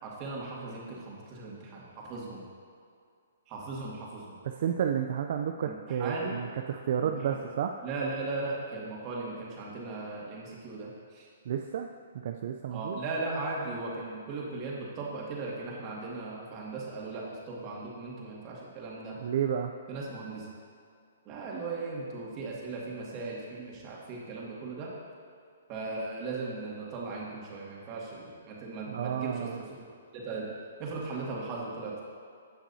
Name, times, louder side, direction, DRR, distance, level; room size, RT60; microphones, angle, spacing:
voice 1, 0.0-2.4 3.5-4.3 5.7-6.4 7.0-7.4 7.8-11.3 12.7-19.2 19.9-20.5 21.3-24.9 25.7-29.6 30.1-32.0, right 3 dB, 30° right, -4 dB, 2.2 m, -37 dB
voice 2, 4.4-7.7 11.5-11.9 12.1-13.0 19.2-19.7 28.9-29.6, right 8 dB, 55° right, 4 dB, 0.5 m, -31 dB
16.5 x 5.9 x 2.8 m, 2.4 s
hypercardioid pair, 140°, 0 cm